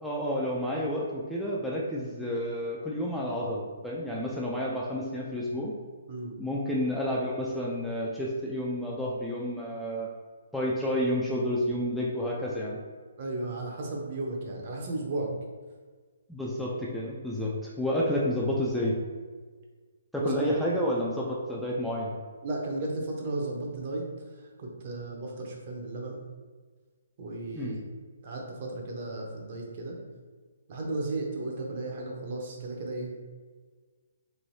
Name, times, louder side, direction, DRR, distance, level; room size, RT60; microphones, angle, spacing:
voice 1, 0.0-5.7 6.4-10.1 10.5-12.8 16.3-19.0 20.1-22.1 27.5-27.8, equal, ahead, -5 dB, 0.3 m, -30 dB
voice 2, 13.2-15.3 20.2-20.7 22.4-24.0 24.3-26.2 27.2-27.8 28.2-30.0 30.7-33.1, right 2 dB, 45° right, 0 dB, 0.6 m, -34 dB
3.2 x 2.6 x 2.6 m, 1.5 s
hypercardioid pair, 150°, 0 cm